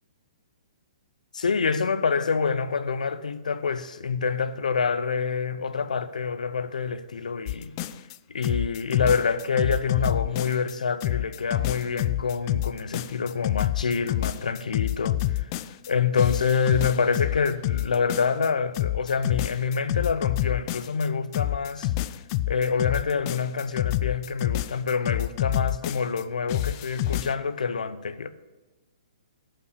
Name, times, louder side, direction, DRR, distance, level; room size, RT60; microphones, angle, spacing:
voice 1, 1.3-7.7 8.3-15.5 15.9-21.9 22.5-28.3, left 5 dB, 90° left, 0.7 m, -26 dB
sound 1, 7.5-8.1 8.4-10.7 11.0-15.9 16.2-18.5 18.7-21.1 21.3-26.2 26.5-27.3, left 15 dB, 35° left, 0.3 m, -28 dB
13.0 x 5.7 x 6.6 m
hypercardioid pair, 145°, 4 cm